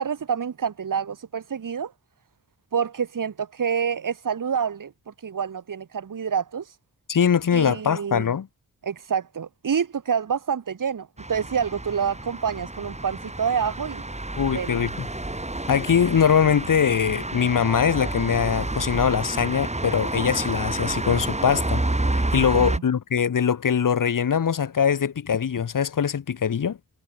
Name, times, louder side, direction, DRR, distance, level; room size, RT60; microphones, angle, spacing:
voice 1, 0.0-1.9 2.7-4.9 5.2-6.7 7.5-8.3 8.8-14.0 14.5-14.9 22.5-22.8, right 7 dB, 75° right, 4.1 m, -27 dB
voice 2, 7.1-8.5 14.4-15.1 15.7-21.8 22.1-26.8, left 7 dB, 80° left, 2.7 m, -22 dB
sound 1, 11.2-22.8, right 2 dB, 20° right, 7.9 m, -29 dB
cardioid pair, 65°, 32 cm